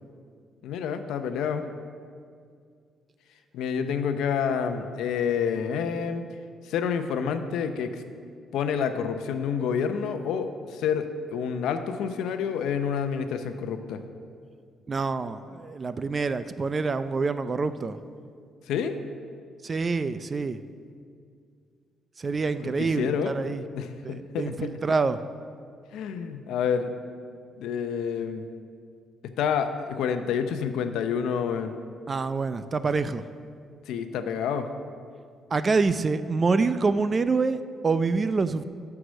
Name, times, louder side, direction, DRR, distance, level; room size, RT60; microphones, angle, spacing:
voice 1, 0.6-1.6 3.5-6.2 6.6-8.0 8.5-14.0 18.7-19.0 22.8-23.3 23.7-24.7 25.9-26.9 27.6-28.5 29.4-31.7 33.9-34.7, left 7 dB, 85° left, 8 dB, 0.7 m, -28 dB
voice 2, 14.9-18.0 19.6-20.6 22.2-23.6 24.0-25.2 32.1-33.2 35.5-38.6, right 4 dB, 35° right, 12 dB, 0.4 m, -26 dB
13.0 x 4.8 x 6.4 m, 2.2 s
cardioid pair, 90°, 0 cm